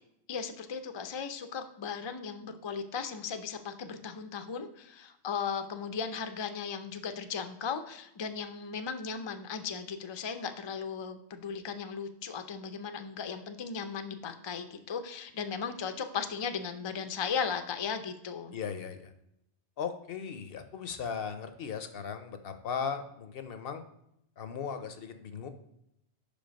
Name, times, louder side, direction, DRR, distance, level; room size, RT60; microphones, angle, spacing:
voice 1, 0.3-18.5, left 6 dB, 40° left, 8 dB, 0.4 m, -36 dB
voice 2, 18.5-19.1 19.8-23.8 24.4-25.5, left 6 dB, 65° left, 9 dB, 0.8 m, -37 dB
5.3 x 5.2 x 5.1 m, 0.79 s
omnidirectional pair, 1.1 m